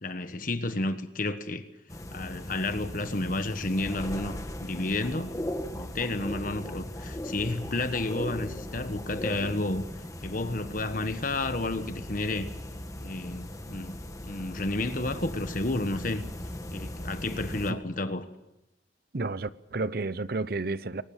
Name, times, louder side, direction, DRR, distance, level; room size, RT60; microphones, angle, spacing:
voice 1, 0.0-1.6 2.1-5.3 5.8-9.8 10.2-12.5 13.0-14.0 14.2-16.3 16.7-18.3, left 2 dB, 45° left, 1.3 m, -31 dB
sound 1, 1.9-17.7, left 1 dB, 15° left, 1.4 m, -38 dB
voice 2, 19.1-21.0, right 3 dB, 55° right, 0.8 m, -31 dB
22.0 x 19.5 x 7.3 m
head